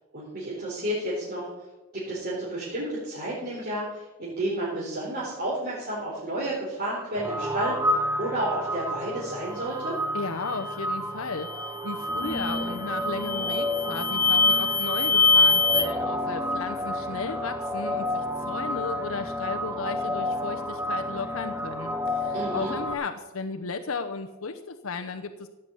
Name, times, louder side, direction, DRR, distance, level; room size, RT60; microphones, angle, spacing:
voice 1, 0.1-1.5 1.9-10.0 22.3-22.7, right 1 dB, 45° right, -7 dB, 4.1 m, -31 dB
sound 1, 7.2-22.9, equal, 10° right, 1.0 m, -31 dB
voice 2, 10.1-25.5, left 4 dB, 70° left, 6 dB, 0.8 m, -34 dB
sound 2, 11.4-11.7 12.2-12.7 13.2-15.8, left 4 dB, 15° left, 0.8 m, -23 dB
16.0 x 6.8 x 8.5 m, 1.1 s
head